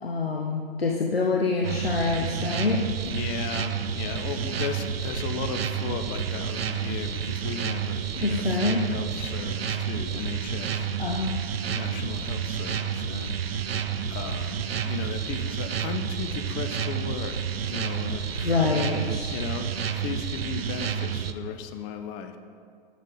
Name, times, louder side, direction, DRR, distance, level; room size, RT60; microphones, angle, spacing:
voice 1, 0.0-2.8 8.1-8.8 11.0-11.4 18.1-19.4, left 3 dB, 90° left, 1 dB, 0.6 m, -26 dB
sound 1, 1.6-21.3, right 7 dB, 80° right, 0.5 m, -30 dB
voice 2, 3.0-10.9 11.6-13.4 14.1-17.3 17.7-22.4, left 7 dB, 25° left, 8 dB, 0.4 m, -36 dB
7.3 x 6.3 x 3.8 m, 2.1 s
figure-of-eight pair, 105°, 29 cm